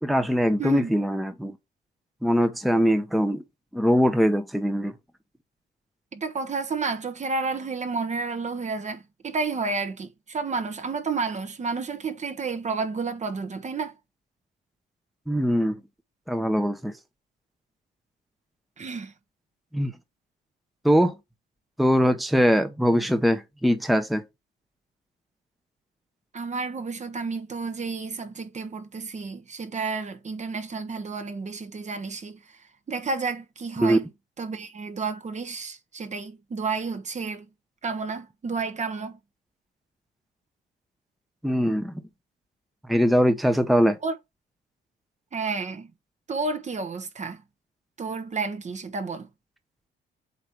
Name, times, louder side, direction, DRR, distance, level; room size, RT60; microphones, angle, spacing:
voice 1, 0.0-1.5 2.2-3.4 3.7-4.9 15.3-15.8 16.3-16.9 19.7-19.9 20.8-21.1 21.8-24.2 33.8-34.0 41.4-41.9 42.9-44.0, equal, ahead, 0.9 m, -22 dB
voice 2, 0.6-0.9 6.1-13.9 18.8-19.1 26.3-32.4 32.9-34.1 34.4-37.4 37.8-39.2 44.0-44.1 45.3-45.9 46.3-47.4 48.0-49.3, right 4 dB, 35° right, 1.1 m, -31 dB
8.0 x 2.8 x 5.2 m
cardioid pair, 90°, 20 cm